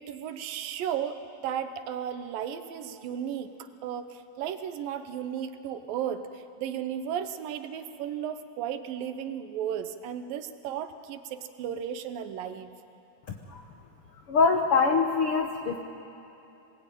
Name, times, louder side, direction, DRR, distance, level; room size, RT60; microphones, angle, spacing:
voice 1, 0.0-12.7, right 9 dB, 75° right, 9 dB, 2.5 m, -34 dB
voice 2, 13.3-13.6 14.3-15.8, left 4 dB, 75° left, 4 dB, 1.3 m, -24 dB
26.5 x 19.5 x 9.1 m, 2.9 s
omnidirectional pair, 4.3 m